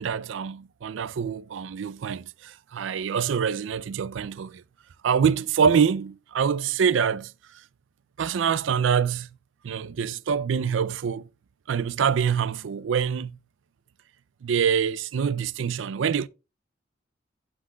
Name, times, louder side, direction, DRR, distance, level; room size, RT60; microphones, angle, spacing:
voice 1, 0.0-4.6 5.0-7.3 8.2-9.3 9.6-11.3 11.7-13.3 14.4-16.3, right 7 dB, 80° right, 0.4 m, -25 dB
15.5 x 5.9 x 2.3 m
head